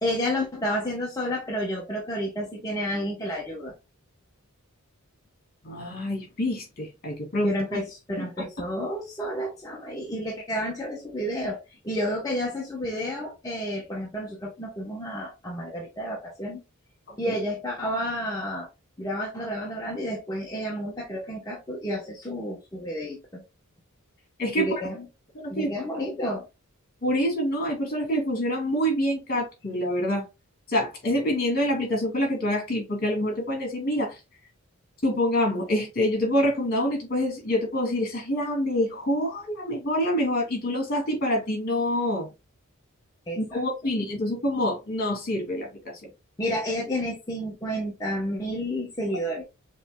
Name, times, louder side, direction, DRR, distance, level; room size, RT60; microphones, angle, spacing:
voice 1, 0.0-3.7 7.4-16.6 17.2-18.7 19.0-23.4 24.6-25.1 25.5-26.5 43.3-43.6 46.4-49.4, equal, 15° left, 0.9 m, -30 dB
voice 2, 5.6-7.5 8.2-8.3 17.2-17.3 24.4-24.7 25.3-25.7 27.0-30.3 30.7-34.2 35.0-42.3 43.4-45.9, left 1 dB, 45° left, 2.8 m, -26 dB
6.8 x 3.3 x 2.2 m
head